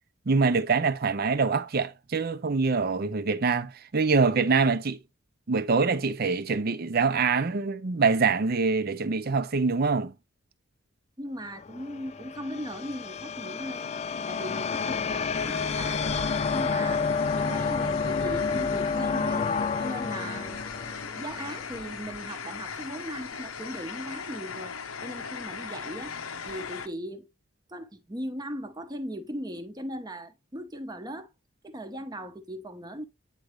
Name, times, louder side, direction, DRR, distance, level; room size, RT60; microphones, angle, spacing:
voice 1, 0.3-5.0 5.5-10.1, right 4 dB, 45° right, 0.6 m, -25 dB
voice 2, 11.2-13.9 14.3-16.1 16.5-17.1 17.3-19.5 19.8-20.6 21.2-24.7 25.0-26.1 26.5-27.3 27.7-31.3 31.6-33.1, equal, 20° right, 0.8 m, -38 dB
sound 1, 11.5-21.9, left 5 dB, 30° left, 0.3 m, -30 dB
sound 2, 15.3-26.9, left 6 dB, 85° left, 0.8 m, -38 dB
9.1 x 3.8 x 3.1 m
head